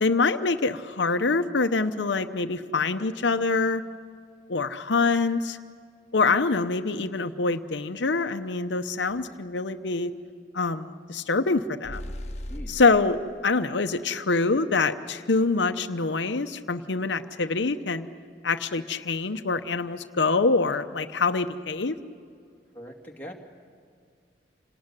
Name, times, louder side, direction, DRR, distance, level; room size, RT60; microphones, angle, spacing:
voice 1, 0.0-3.8 4.5-5.6 6.1-10.1 10.5-12.0 12.7-13.2 13.4-18.1 18.4-22.0, left 3 dB, 85° left, 8 dB, 0.9 m, -25 dB
sound 1, 11.8-13.1, left 1 dB, 40° left, 1.3 m, -36 dB
voice 2, 12.5-12.8 22.7-23.3, equal, 10° left, 0 dB, 2.4 m, -41 dB
27.5 x 19.0 x 9.8 m, 2.3 s
head